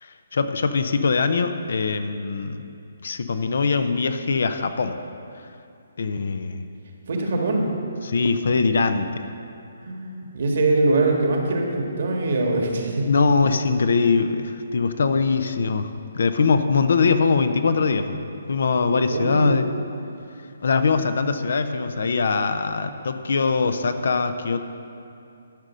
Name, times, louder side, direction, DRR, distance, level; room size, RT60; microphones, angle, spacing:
voice 1, 0.0-2.6 3.0-5.0 6.0-6.6 8.0-9.1 13.0-19.7 20.6-24.6, left 4 dB, 70° left, 9 dB, 0.6 m, -22 dB
voice 2, 7.1-7.7 9.8-13.1 19.1-19.5, right 2 dB, 60° right, 1 dB, 1.7 m, -23 dB
12.0 x 5.2 x 6.2 m, 2.6 s
hypercardioid pair, 160°, 0 cm